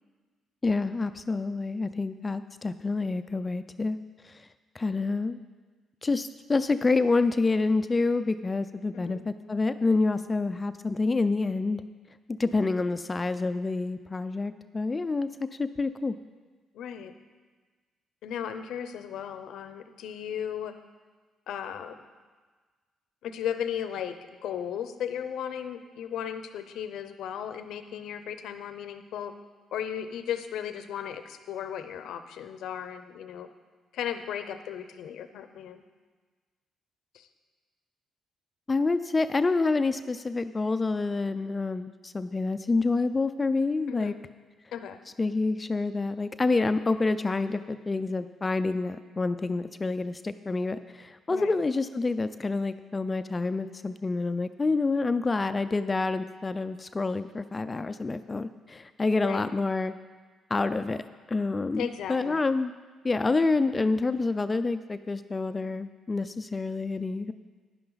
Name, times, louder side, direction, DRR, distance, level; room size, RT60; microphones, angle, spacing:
voice 1, 0.6-4.0 4.2-4.5 4.7-5.4 6.0-11.8 12.3-16.2 38.7-44.1 45.2-59.9 60.5-61.0 61.3-62.7 63.0-67.3, left 3 dB, 25° left, 11 dB, 0.4 m, -28 dB
voice 2, 8.9-9.2 16.7-17.1 18.2-20.7 21.5-22.0 23.2-29.3 29.7-33.5 33.9-35.8 37.1-37.3 43.9-44.2 44.7-45.0 51.3-51.5 59.2-59.4 61.8-62.4, left 9 dB, 80° left, 10 dB, 0.7 m, -36 dB
10.5 x 10.5 x 4.0 m, 1.4 s
cardioid pair, 90°, 0 cm